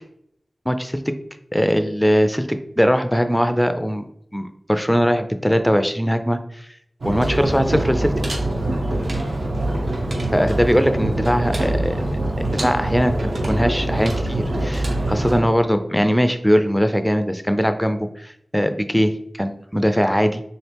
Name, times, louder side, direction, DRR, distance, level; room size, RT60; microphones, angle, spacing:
voice 1, 0.7-1.1 1.5-4.0 4.3-6.7 7.0-8.1 10.3-12.0 12.4-20.4, equal, 5° left, 9 dB, 0.4 m, -20 dB
sound 1, 7.0-15.4, right 1 dB, 85° right, 0.8 m, -24 dB
4.2 x 2.4 x 3.3 m, 0.73 s
wide cardioid pair, 50°, 0 cm